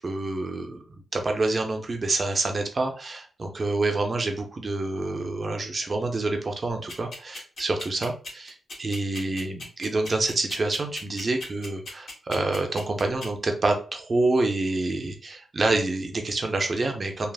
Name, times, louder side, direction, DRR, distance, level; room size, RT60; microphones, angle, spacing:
voice 1, 0.0-17.3, right 2 dB, 35° right, 4 dB, 0.4 m, -27 dB
sound 1, 6.9-13.3, left 2 dB, 70° left, 1.4 m, -38 dB
3.3 x 2.0 x 2.3 m, 0.37 s
wide cardioid pair, 120°, 0 cm